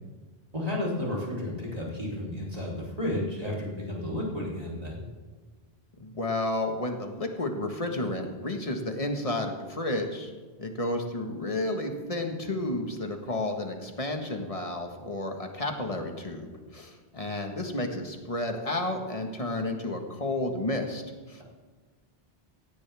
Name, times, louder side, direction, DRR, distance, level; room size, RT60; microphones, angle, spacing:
voice 1, 0.5-5.1, left 1 dB, 40° right, -4 dB, 3.7 m, -32 dB
voice 2, 5.9-10.3 10.6-21.0 21.3-21.4, left 1 dB, 35° left, 4 dB, 1.6 m, -31 dB
17.0 x 16.5 x 3.5 m, 1.4 s
omnidirectional pair, 1.0 m